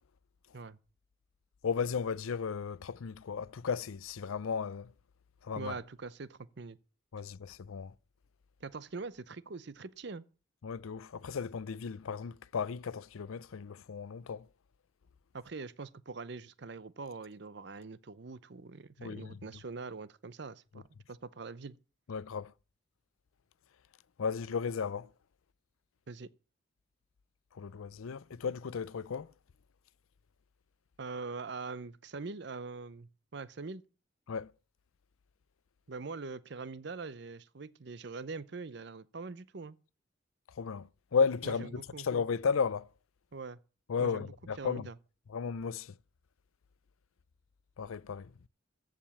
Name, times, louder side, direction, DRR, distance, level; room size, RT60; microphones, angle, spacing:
voice 1, 1.6-4.9 5.4-5.7 7.1-7.9 10.6-14.4 19.0-19.3 22.1-22.5 24.2-25.1 27.5-29.3 34.3-34.5 40.6-42.9 43.9-44.9 45.3-45.9 47.8-48.3, left 5 dB, 90° left, 0.5 m, -34 dB
voice 2, 5.6-6.8 8.6-10.2 15.3-21.8 26.1-26.3 31.0-33.8 35.9-39.8 41.4-42.1 43.3-43.6 44.0-45.0, right 4 dB, 55° right, 0.6 m, -43 dB
14.5 x 5.0 x 7.1 m
head